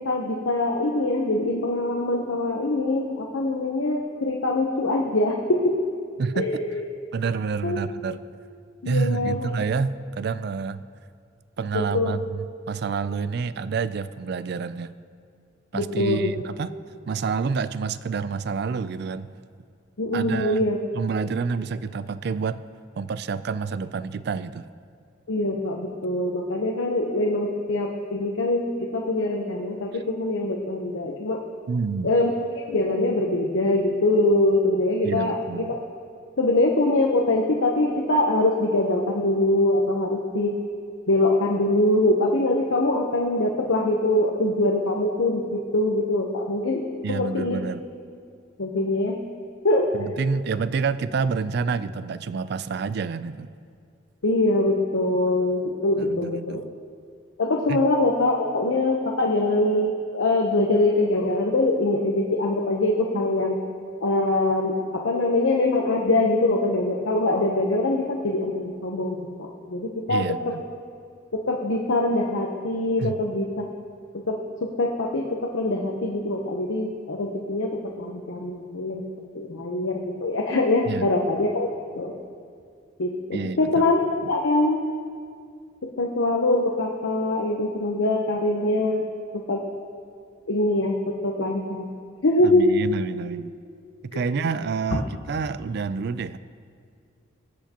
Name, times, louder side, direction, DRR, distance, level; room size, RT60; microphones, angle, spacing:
voice 1, 0.0-5.7 6.3-6.8 7.6-7.8 8.8-9.5 11.7-12.1 15.7-16.3 20.0-20.8 25.3-31.4 32.0-32.3 32.6-35.8 36.4-40.6 41.1-47.6 48.6-49.2 49.6-49.8 54.2-56.6 57.4-63.6 64.0-64.7 65.0-70.2 71.5-73.7 74.3-79.0 79.3-81.7 82.0-82.1 83.0-84.8 85.8-89.1 89.3-89.6 90.5-91.0 91.2-91.9 92.2-92.8 94.1-94.2, left 2 dB, 90° left, 0 dB, 0.9 m, -23 dB
voice 2, 6.2-6.5 7.1-8.2 8.8-10.8 11.6-14.9 15.7-16.7 17.1-19.3 20.1-20.7 20.9-22.6 23.0-24.7 31.7-32.1 35.0-35.7 47.0-47.8 49.9-53.5 56.0-56.8 57.7-57.8 70.1-70.6 73.0-73.1 80.9-81.1 83.3-83.9 92.4-93.5 94.0-96.4, right 5 dB, 55° right, 15 dB, 0.3 m, -28 dB
20.5 x 8.2 x 2.9 m, 2.3 s
head